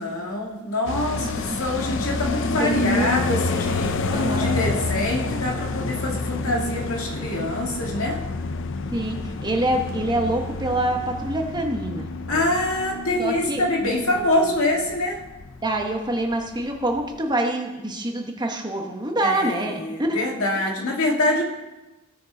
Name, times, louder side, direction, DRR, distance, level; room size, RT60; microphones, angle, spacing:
voice 1, 0.0-3.9 4.3-8.2 12.3-15.2 19.2-21.4, left 1 dB, 85° left, 0 dB, 1.9 m, -25 dB
sound 1, 0.9-15.9 16.3-16.4 16.6-17.2, left 3 dB, 60° left, 0.5 m, -29 dB
voice 2, 1.2-2.0 2.6-3.8 4.1-4.6 8.9-12.5 13.2-13.6 15.6-20.2, right 1 dB, 20° right, 2 dB, 1.2 m, -26 dB
16.5 x 6.5 x 3.9 m, 1.1 s
head